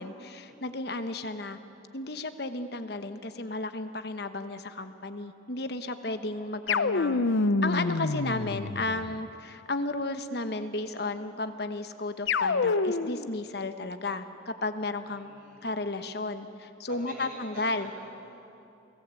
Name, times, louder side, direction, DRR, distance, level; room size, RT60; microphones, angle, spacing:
voice 1, 0.0-1.6 1.9-7.2 7.6-15.3 15.6-17.9, left 2 dB, 60° left, 9 dB, 1.1 m, -33 dB
sound 1, 6.7-9.2 12.3-13.3, left 3 dB, 85° left, 0.7 m, -27 dB
voice 2, 15.1-15.7 16.9-18.6, right 2 dB, 45° right, -2 dB, 7.3 m, -48 dB
29.0 x 18.0 x 8.3 m, 2.7 s
head